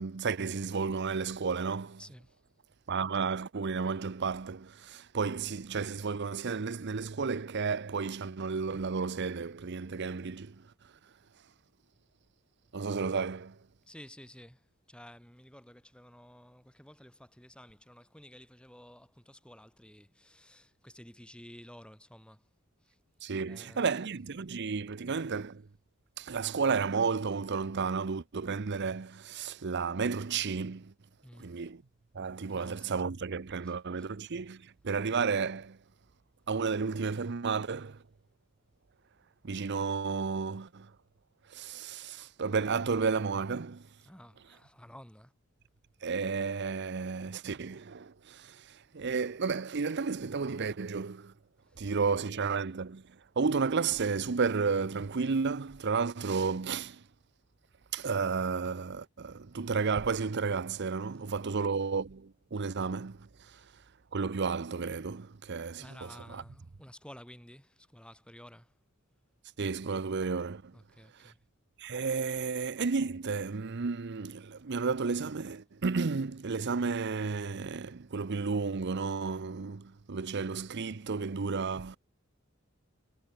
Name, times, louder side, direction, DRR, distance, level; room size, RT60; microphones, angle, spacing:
voice 1, 0.0-2.0 2.9-10.6 12.7-13.6 23.2-25.6 26.2-30.9 31.4-31.8 32.1-35.8 36.5-38.0 39.4-40.9 41.5-43.9 46.0-51.3 51.8-53.0 53.4-57.0 57.9-63.6 64.1-66.4 69.6-70.7 71.2-71.3 71.8-82.0, right 5 dB, 55° right, 0.7 m, -32 dB
voice 2, 2.0-2.4 13.9-22.4 22.8-23.0 23.5-23.9 31.2-31.5 32.5-32.9 33.6-34.1 44.0-45.3 51.7-51.9 61.2-61.5 63.5-63.7 65.8-68.7 70.7-71.4, equal, 5° left, 3.3 m, -53 dB
head